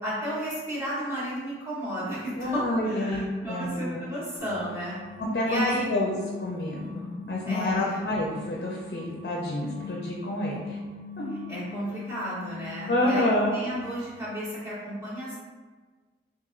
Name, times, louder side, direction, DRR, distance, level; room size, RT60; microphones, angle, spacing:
voice 1, 0.0-4.9 5.4-5.9 7.5-8.0 11.5-15.4, equal, 15° right, -10 dB, 1.2 m, -33 dB
voice 2, 2.4-4.0 5.2-5.6 5.9-6.1 6.4-10.8 11.2-11.3 12.9-13.6, left 1 dB, 60° left, -2 dB, 0.5 m, -28 dB
sound 1, 4.4-14.1, left 3 dB, 5° left, 1.3 m, -42 dB
2.9 x 2.7 x 3.6 m, 1.4 s
head